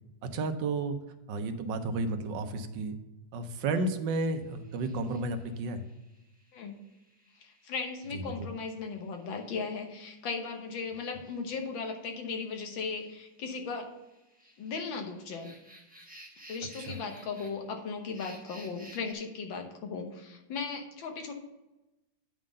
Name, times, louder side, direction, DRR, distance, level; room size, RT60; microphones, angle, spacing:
voice 1, 0.2-1.0 1.3-3.0 3.3-5.8 8.1-8.5 16.8-17.0, right 3 dB, 75° right, 8 dB, 1.4 m, -32 dB
sound 1, 4.4-19.1, equal, 5° right, 1.0 m, -57 dB
voice 2, 7.4-13.9 14.6-15.5 16.5-21.3, left 5 dB, 80° left, 3 dB, 1.9 m, -37 dB
9.6 x 3.8 x 6.3 m, 1.0 s
omnidirectional pair, 2.1 m